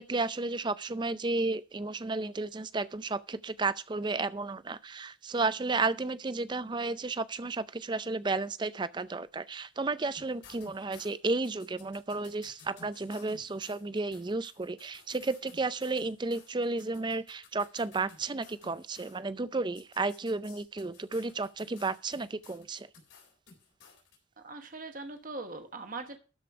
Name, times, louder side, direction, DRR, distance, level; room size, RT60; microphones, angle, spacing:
voice 1, 0.0-22.9, right 3 dB, 25° right, 0.4 m, -33 dB
sound 1, 10.1-19.2 19.7-24.2, left 5 dB, 75° left, 3.9 m, -55 dB
voice 2, 24.4-26.2, right 3 dB, 45° right, 1.2 m, -41 dB
12.5 x 5.2 x 5.8 m
head